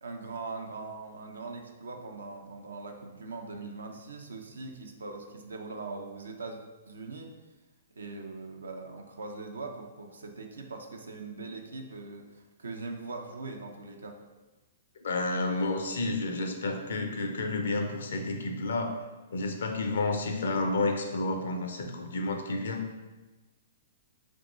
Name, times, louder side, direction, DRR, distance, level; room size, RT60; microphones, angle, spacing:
voice 1, 0.0-6.6 6.9-7.3 8.0-14.2, right 3 dB, 90° right, 3 dB, 0.5 m, -41 dB
voice 2, 15.0-19.0 19.3-22.8, left 2 dB, 75° left, 4 dB, 0.6 m, -30 dB
3.6 x 2.9 x 3.8 m, 1.2 s
hypercardioid pair, 125°, 0 cm